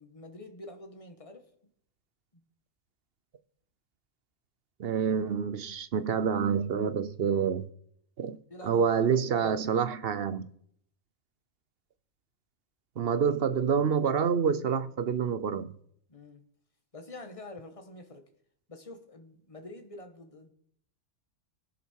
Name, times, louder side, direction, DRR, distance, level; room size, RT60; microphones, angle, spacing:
voice 1, 0.0-1.5 2.3-2.4 8.5-9.1 9.4-9.6 16.1-16.4 16.9-18.3 18.7-20.5, left 2 dB, 25° left, 1.7 m, -47 dB
voice 2, 4.8-7.7 8.2-8.4 8.6-10.5 13.0-15.7, right 7 dB, 55° right, 0.9 m, -27 dB
19.5 x 11.0 x 4.7 m
omnidirectional pair, 1.3 m